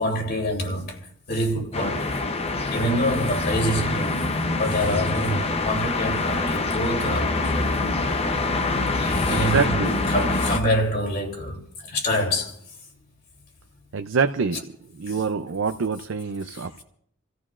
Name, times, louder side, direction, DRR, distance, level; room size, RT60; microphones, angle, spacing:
voice 1, 0.0-2.2 2.7-4.2 4.6-7.8 8.2-8.3 8.9-12.5, equal, 50° left, 3.1 m, -26 dB
sound 1, 1.7-10.6, left 3 dB, 30° left, 0.7 m, -25 dB
voice 2, 9.3-9.9 13.9-14.6 14.9-16.8, right 5 dB, 70° right, 0.5 m, -25 dB
28.5 x 14.5 x 2.5 m
head